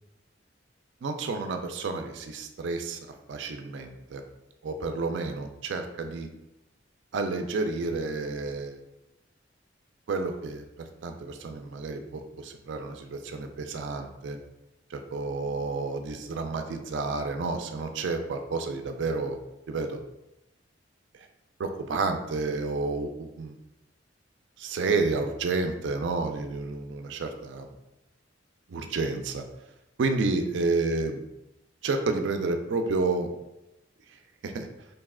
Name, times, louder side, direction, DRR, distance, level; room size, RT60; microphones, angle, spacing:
voice 1, 1.0-3.0 3.3-4.2 4.6-6.3 7.1-8.8 10.1-14.4 14.9-19.4 19.7-20.0 21.6-23.6 24.6-27.7 28.7-29.4 30.0-31.3 31.8-33.3 34.4-34.7, right 3 dB, 70° right, 6 dB, 0.4 m, -30 dB
3.1 x 2.8 x 3.6 m, 0.91 s
head